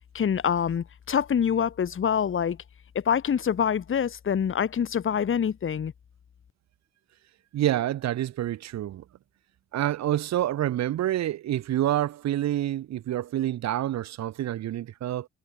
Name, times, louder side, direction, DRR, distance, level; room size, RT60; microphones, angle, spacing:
voice 1, 0.1-2.6 2.9-5.9, left 8 dB, 45° left, 1.5 m, -25 dB
voice 2, 7.5-9.0 9.7-15.3, right 13 dB, 65° right, 0.9 m, -27 dB
cardioid pair, 90°, 30 cm